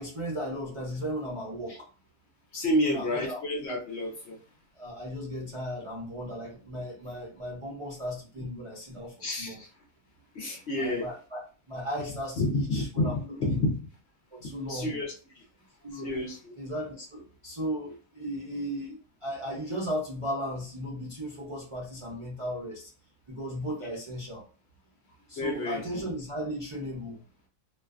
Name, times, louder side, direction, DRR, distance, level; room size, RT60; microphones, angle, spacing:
voice 1, 0.0-1.9 2.8-3.4 4.7-9.6 10.8-13.6 14.3-15.0 15.8-16.2 16.5-22.9 23.3-24.5 25.3-27.2, equal, 40° right, -6 dB, 0.4 m, -36 dB
voice 2, 2.5-4.4 9.2-9.7 10.3-11.1 12.4-13.8 14.7-15.1 15.9-16.5 23.8-24.0 25.4-26.0, left 1 dB, 60° left, 0 dB, 0.8 m, -30 dB
2.5 x 2.2 x 2.4 m, 0.36 s
omnidirectional pair, 1.5 m